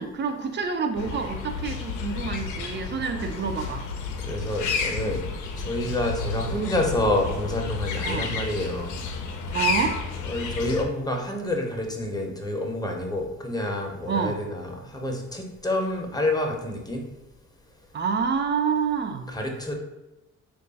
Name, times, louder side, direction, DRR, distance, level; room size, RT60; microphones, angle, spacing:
voice 1, 0.0-3.9 8.0-8.3 9.5-10.0 14.1-14.4 17.9-19.3, right 6 dB, 40° right, 6 dB, 0.4 m, -27 dB
sound 1, 0.9-10.8, left 5 dB, 85° left, 0.5 m, -31 dB
voice 2, 4.2-5.2 5.6-8.9 10.2-17.0 19.3-19.7, left 1 dB, 15° left, 1 dB, 0.6 m, -28 dB
3.1 x 2.4 x 3.9 m, 0.99 s
cardioid pair, 90°, 30 cm